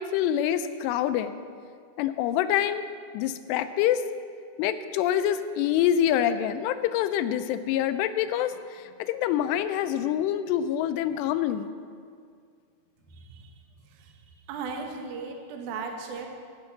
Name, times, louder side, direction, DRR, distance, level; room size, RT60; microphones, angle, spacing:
voice 1, 0.0-1.3 2.0-2.8 3.1-4.0 4.6-11.7, left 10 dB, 85° left, 11 dB, 2.6 m, -26 dB
voice 2, 14.5-16.3, right 4 dB, 65° right, 3 dB, 2.0 m, -35 dB
15.0 x 5.3 x 7.2 m, 2.2 s
omnidirectional pair, 4.9 m